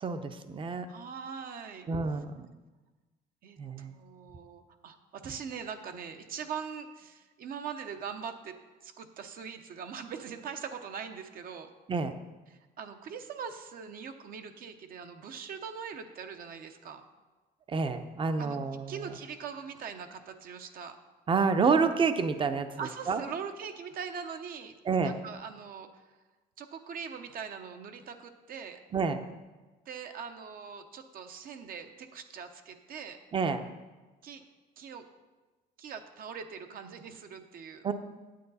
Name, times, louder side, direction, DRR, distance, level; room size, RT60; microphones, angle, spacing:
voice 1, 0.0-0.9 1.9-2.5 3.6-3.9 11.9-12.1 17.7-19.0 21.3-22.7 23.1-23.2 24.9-25.1 28.9-29.2 33.3-33.7 37.8-37.9, right 5 dB, 30° right, 9 dB, 0.7 m, -28 dB
voice 2, 0.9-1.9 3.4-8.5 8.8-11.7 12.5-17.0 18.4-18.6 18.9-21.0 22.8-24.7 25.0-26.0 26.6-28.8 29.9-33.2 34.2-34.4 34.8-35.0 35.8-37.9, right 6 dB, 60° right, 7 dB, 0.9 m, -42 dB
9.3 x 8.1 x 4.1 m, 1.2 s
cardioid pair, 110°, 17 cm